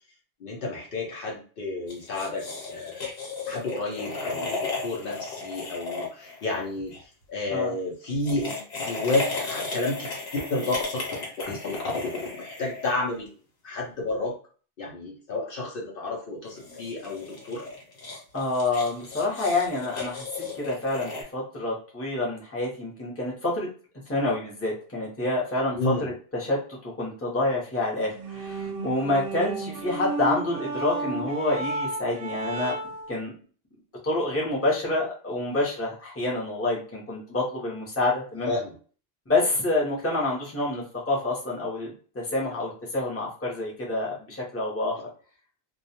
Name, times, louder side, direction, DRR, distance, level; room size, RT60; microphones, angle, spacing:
voice 1, 0.4-3.1 3.5-6.9 7.3-11.1 11.4-11.8 12.4-13.3 13.6-14.3 14.8-17.6 25.8-26.1 38.4-38.7, left 2 dB, 65° left, -1 dB, 0.8 m, -31 dB
sound 1, 1.9-7.0 8.1-13.3 16.4-21.2, left 3 dB, 85° left, 1.1 m, -35 dB
voice 2, 18.3-23.7 24.1-32.7 33.1-33.3 34.0-38.5 39.3-45.0, left 2 dB, 15° left, -5 dB, 0.7 m, -28 dB
sound 2, 28.1-33.1, right 3 dB, 70° right, 0.7 m, -33 dB
2.3 x 2.2 x 2.7 m, 0.40 s
omnidirectional pair, 1.1 m